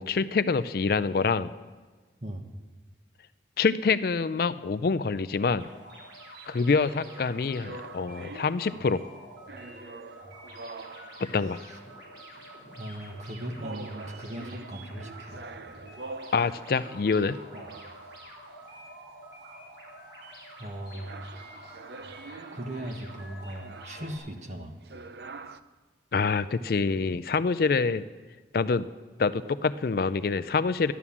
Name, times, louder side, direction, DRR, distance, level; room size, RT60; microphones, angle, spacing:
voice 1, 0.0-1.5 3.6-5.7 6.5-9.0 11.2-11.6 16.3-17.4 26.1-28.0 28.5-28.9 29.2-30.9, left 4 dB, 55° left, 13 dB, 0.4 m, -26 dB
sound 1, 5.6-24.2, right 1 dB, 85° right, 4.4 m, -48 dB
sound 2, 7.0-9.2 9.5-11.6 12.3-12.8 13.6-19.0 20.9-25.6, right 3 dB, 60° right, 0.5 m, -45 dB
voice 2, 12.8-15.4 17.5-17.7 20.6-21.3 22.5-24.8, right 1 dB, 40° right, 4 dB, 1.3 m, -38 dB
12.5 x 11.0 x 7.2 m, 1.3 s
head